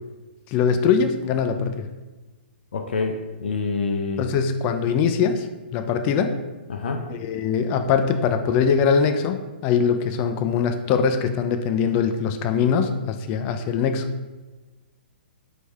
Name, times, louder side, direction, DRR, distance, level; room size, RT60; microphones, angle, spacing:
voice 1, 0.5-1.9 4.2-6.4 7.1-14.1, left 6 dB, 25° left, 8 dB, 0.3 m, -22 dB
voice 2, 2.7-4.3 6.7-7.1, left 4 dB, 75° left, 3 dB, 0.5 m, -26 dB
4.0 x 3.3 x 3.5 m, 1.2 s
hypercardioid pair, 150°, 6 cm